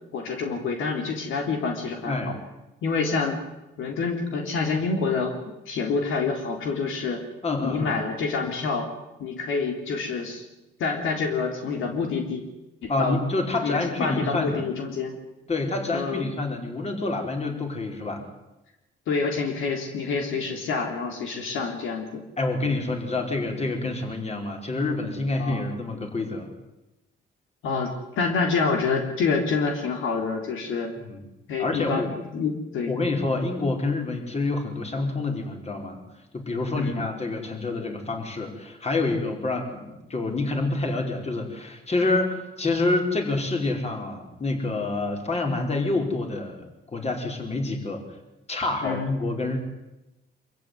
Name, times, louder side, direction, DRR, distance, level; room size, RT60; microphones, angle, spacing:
voice 1, 0.1-2.3 2.8-3.4 3.8-5.4 5.7-7.2 7.6-8.9 9.2-10.4 10.8-12.4 12.8-13.2 13.6-15.1 15.9-16.2 19.1-22.2 25.4-25.7 27.6-30.9 31.5-32.9 36.7-37.0 48.8-49.1, left 4 dB, 80° left, 3 dB, 3.7 m, -27 dB
voice 2, 7.4-8.0 12.9-14.6 15.5-18.2 22.4-26.5 31.1-31.2 31.6-32.1 32.9-36.0 36.3-46.6 46.9-48.0 48.5-49.6, left 2 dB, 30° left, 3 dB, 5.0 m, -27 dB
25.0 x 15.0 x 9.6 m, 0.98 s
cardioid pair, 90°, 20 cm